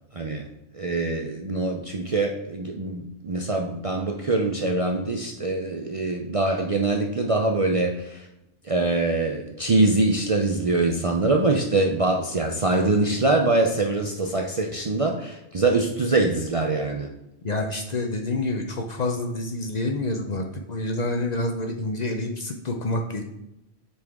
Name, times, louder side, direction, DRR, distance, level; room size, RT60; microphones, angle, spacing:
voice 1, 0.1-0.5 0.7-8.3 8.6-17.1, right 2 dB, 40° right, 2 dB, 0.5 m, -24 dB
voice 2, 17.4-23.2, left 2 dB, 45° left, 3 dB, 0.7 m, -28 dB
7.7 x 4.3 x 3.5 m, 0.89 s
omnidirectional pair, 1.2 m